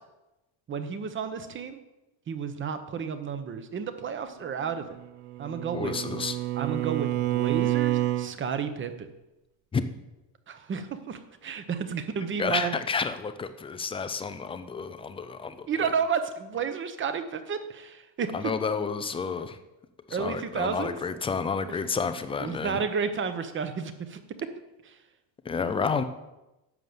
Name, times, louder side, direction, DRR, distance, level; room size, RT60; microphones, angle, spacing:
voice 1, 0.7-1.8 2.3-5.0 5.4-5.9 6.6-9.1 10.5-12.7 15.7-18.5 20.1-20.9 21.7-21.8 22.4-24.2 24.8-24.9, right 6 dB, 25° right, 9 dB, 0.9 m, -31 dB
Bowed string instrument, 5.0-8.4, right 14 dB, 40° right, 0.5 m, -28 dB
voice 2, 5.7-6.4 9.7-9.9 12.4-15.9 18.3-19.6 20.1-22.8 25.5-26.0, left 5 dB, 15° left, 10 dB, 0.3 m, -30 dB
11.0 x 6.8 x 7.8 m, 0.99 s
cardioid pair, 165°, 45 cm